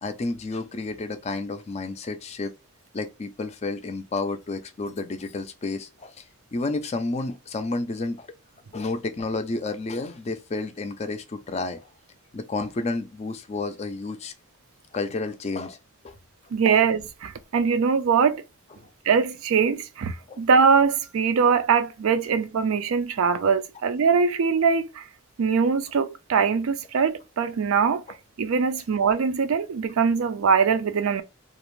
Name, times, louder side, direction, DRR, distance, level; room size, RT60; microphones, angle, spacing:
voice 1, 0.0-2.5 2.9-6.2 6.5-8.3 8.7-11.9 12.3-14.3 14.9-15.8 16.0-16.1 18.8-18.9 20.3-20.4, left 3 dB, 30° left, 0.4 m, -31 dB
voice 2, 16.5-18.4 19.1-25.0 25.4-28.0 28.4-31.2, right 6 dB, 75° right, 0.4 m, -22 dB
2.5 x 2.0 x 3.0 m
head